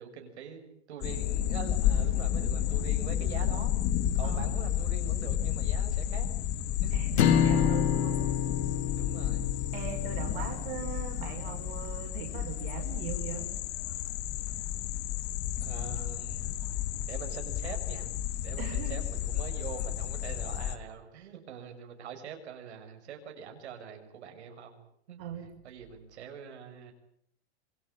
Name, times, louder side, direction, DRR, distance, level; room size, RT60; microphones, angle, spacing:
voice 1, 0.0-3.7 4.1-6.3 6.6-7.0 8.9-9.5 15.6-16.5 17.1-18.1 18.4-25.2 25.6-26.9, right 7 dB, 80° right, 4 dB, 6.3 m, -44 dB
sound 1, 1.0-20.8, left 11 dB, 30° left, 1.8 m, -31 dB
voice 2, 6.9-8.2 9.7-13.5 18.6-19.2 25.2-25.5, right 8 dB, 55° right, 3 dB, 6.0 m, -40 dB
sound 2, 7.2-11.5, left 8 dB, 70° left, 3.0 m, -29 dB
27.0 x 21.5 x 8.9 m, 0.68 s
supercardioid pair, 165°, 33 cm